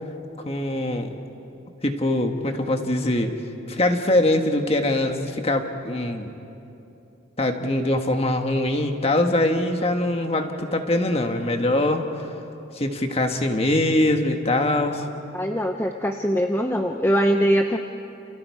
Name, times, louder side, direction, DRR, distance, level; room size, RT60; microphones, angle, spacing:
voice 1, 0.4-1.1 1.8-3.3 3.7-6.3 7.4-12.3 12.7-15.0, left 1 dB, 30° left, 5 dB, 1.5 m, -23 dB
voice 2, 15.3-17.8, equal, 10° left, 4 dB, 0.7 m, -22 dB
29.5 x 29.0 x 4.8 m, 2.9 s
head